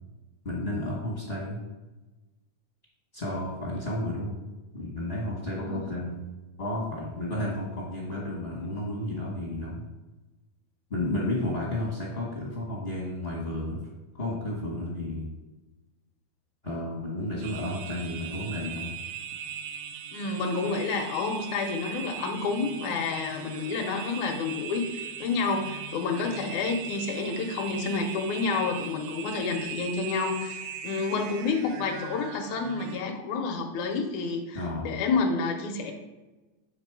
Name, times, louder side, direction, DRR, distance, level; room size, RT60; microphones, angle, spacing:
voice 1, 0.4-1.6 3.1-4.4 4.7-6.3 6.6-9.8 10.9-13.8 14.1-15.3 16.6-18.9 34.5-35.0, left 1 dB, 45° left, -5 dB, 0.7 m, -32 dB
sound 1, 17.4-33.0, right 8 dB, 80° right, 1.9 m, -39 dB
voice 2, 20.1-35.9, left 4 dB, 85° left, 3 dB, 2.2 m, -29 dB
8.0 x 3.7 x 4.7 m, 1.1 s
omnidirectional pair, 3.4 m